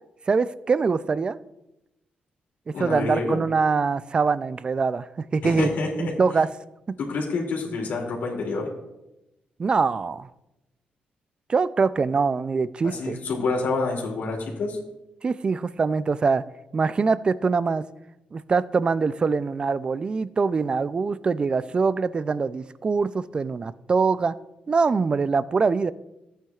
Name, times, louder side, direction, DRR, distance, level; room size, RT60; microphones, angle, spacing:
voice 1, 0.3-1.4 2.8-5.7 6.0-6.5 9.6-10.3 11.5-13.2 15.2-16.4 16.7-17.8 18.3-24.3 24.7-25.9, right 4 dB, 30° right, 16 dB, 0.3 m, -23 dB
voice 2, 2.7-3.4 5.4-6.1 7.0-8.7 12.8-14.8, left 3 dB, 75° left, -1 dB, 2.7 m, -27 dB
14.5 x 9.0 x 2.4 m, 0.93 s
cardioid pair, 140°, 3 cm